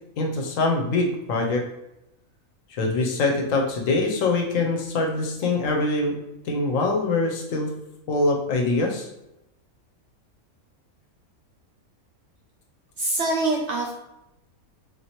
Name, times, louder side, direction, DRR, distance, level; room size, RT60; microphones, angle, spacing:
voice 1, 0.2-1.6 2.7-6.1 6.4-7.7 8.1-9.1, left 3 dB, 70° left, 1 dB, 0.9 m, -24 dB
voice 2, 13.0-14.0, right 2 dB, 65° right, -1 dB, 0.7 m, -24 dB
3.2 x 2.5 x 2.8 m, 0.89 s
omnidirectional pair, 1.5 m